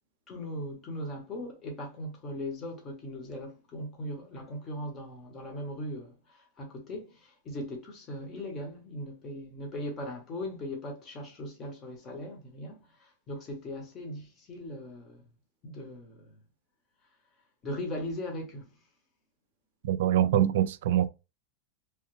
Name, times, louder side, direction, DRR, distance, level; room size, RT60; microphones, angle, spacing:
voice 1, 0.3-15.2 15.6-16.4 17.6-18.7, left 1 dB, 25° left, 1.0 m, -39 dB
voice 2, 19.8-21.1, right 11 dB, 70° right, 0.3 m, -24 dB
3.2 x 2.2 x 3.1 m
supercardioid pair, 145°, 0 cm